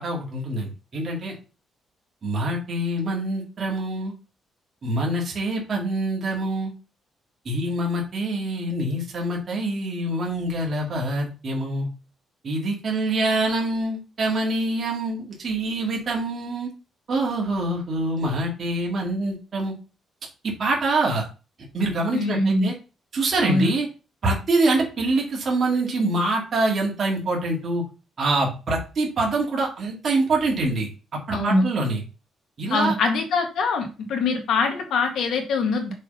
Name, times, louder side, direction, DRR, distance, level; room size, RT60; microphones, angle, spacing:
voice 1, 0.0-1.4 2.2-4.1 4.8-6.7 7.5-11.9 12.4-16.7 17.1-19.8 20.4-21.3 21.7-22.7 23.1-23.9 24.2-27.8 28.2-32.0 32.6-32.9, right 2 dB, 40° right, -2 dB, 2.2 m, -25 dB
voice 2, 22.1-22.7 23.4-23.7 31.3-31.7 32.7-35.9, left 3 dB, 70° left, 4 dB, 1.8 m, -23 dB
6.4 x 3.7 x 5.5 m, 0.33 s
cardioid pair, 140°, 0 cm